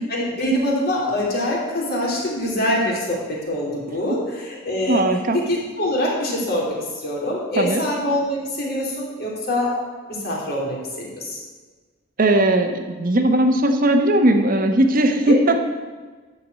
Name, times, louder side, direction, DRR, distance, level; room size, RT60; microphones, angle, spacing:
voice 1, 0.1-5.0 5.3-9.7 10.1-11.4 15.3-15.4, left 1 dB, 55° left, -3 dB, 3.0 m, -24 dB
voice 2, 4.9-5.4 7.6-7.8 12.2-15.6, right 1 dB, 45° right, 5 dB, 1.0 m, -18 dB
12.0 x 4.7 x 8.3 m, 1.3 s
head